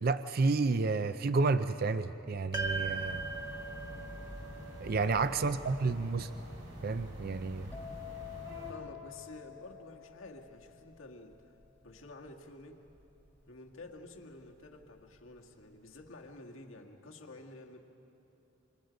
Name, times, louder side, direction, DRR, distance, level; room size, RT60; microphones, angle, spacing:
voice 1, 0.0-3.2 4.8-6.3 6.8-7.7, right 3 dB, 50° right, 11 dB, 0.5 m, -30 dB
sound 1, 2.5-7.0, right 3 dB, 20° right, 1.6 m, -40 dB
sound 2, 2.5-8.7, left 1 dB, 70° right, 5.9 m, -46 dB
voice 2, 5.0-5.5 8.7-11.3 11.8-12.8 13.5-17.8, left 2 dB, 90° left, 1 dB, 1.8 m, -50 dB
sound 3, 7.7-15.3 15.6-16.0, left 10 dB, 10° left, 1.3 m, -50 dB
27.5 x 26.0 x 5.2 m, 2.9 s
head